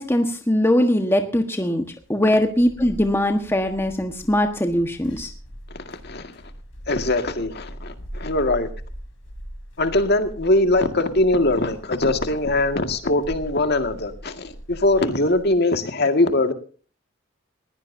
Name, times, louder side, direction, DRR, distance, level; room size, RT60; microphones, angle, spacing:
voice 1, 0.0-5.3, left 1 dB, 10° left, 5 dB, 1.4 m, -21 dB
sound 1, 2.0-15.5, equal, 70° left, 3.5 m, -40 dB
voice 2, 5.7-6.3 6.9-8.7 9.8-16.5, left 2 dB, 50° left, 7 dB, 2.0 m, -21 dB
20.5 x 16.5 x 2.7 m, 0.41 s
head